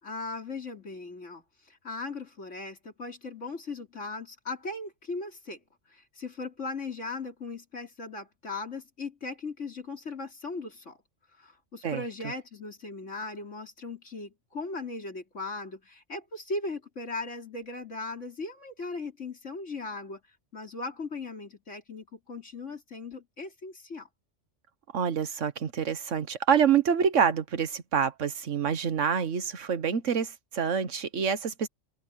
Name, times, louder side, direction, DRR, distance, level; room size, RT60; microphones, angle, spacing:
voice 1, 0.0-5.6 5.9-11.0 11.4-20.2 20.5-24.1, left 3 dB, 75° left, 4.0 m, -38 dB
voice 2, 24.9-31.7, right 7 dB, 75° right, 1.6 m, -27 dB
open air
omnidirectional pair, 1.3 m